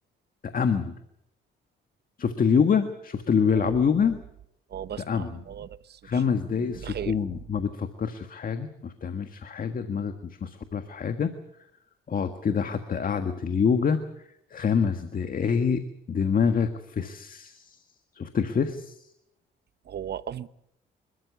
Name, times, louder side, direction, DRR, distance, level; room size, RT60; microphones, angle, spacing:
voice 1, 0.4-1.0 2.2-4.2 5.0-5.4 6.0-10.1 10.4-11.3 12.1-14.0 14.5-17.8 18.1-19.1, left 6 dB, 45° left, 1.6 m, -26 dB
voice 2, 4.7-6.2 6.6-7.2 19.9-20.5, right 9 dB, 55° right, 1.0 m, -37 dB
27.5 x 13.5 x 8.4 m
cardioid pair, 90°, 20 cm